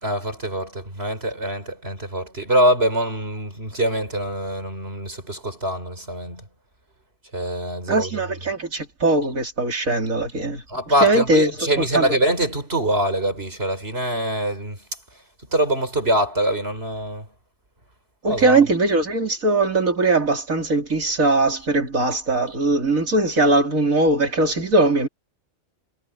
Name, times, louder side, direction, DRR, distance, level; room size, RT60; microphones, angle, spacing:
voice 1, 0.0-6.4 7.3-8.1 10.7-14.8 15.5-17.2 18.2-18.6, right 1 dB, 50° right, 5.0 m, -24 dB
voice 2, 7.9-10.6 11.0-12.1 18.2-25.1, right 2 dB, 85° right, 3.8 m, -20 dB
omnidirectional pair, 1.4 m